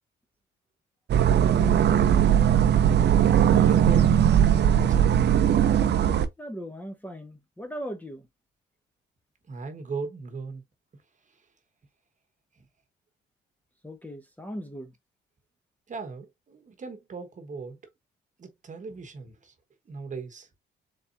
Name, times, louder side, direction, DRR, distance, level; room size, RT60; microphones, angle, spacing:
sound 1, 1.1-6.3, right 9 dB, 60° right, 0.7 m, -19 dB
voice 1, 3.5-4.1 4.8-5.1 9.5-10.6 15.9-17.8 18.4-19.5 19.9-20.5, right 4 dB, 40° right, 1.2 m, -37 dB
voice 2, 6.4-8.3 13.8-14.9, equal, 10° left, 1.0 m, -38 dB
4.1 x 3.6 x 2.6 m
cardioid pair, 90°, 20 cm